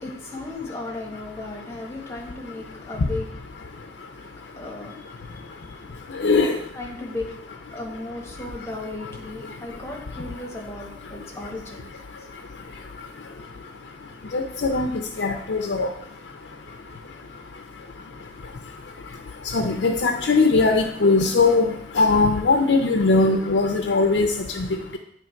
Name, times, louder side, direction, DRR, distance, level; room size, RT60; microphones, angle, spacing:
voice 1, 0.0-3.3 3.5-6.3 6.7-7.2 7.7-12.3, left 2 dB, 15° left, -1 dB, 1.3 m, -36 dB
voice 2, 6.2-6.6 14.3-14.9 15.2-15.9 19.5-21.7 21.9-24.3 24.6-24.7, left 3 dB, 85° left, 3 dB, 0.6 m, -20 dB
8.9 x 3.1 x 4.5 m, 0.69 s
head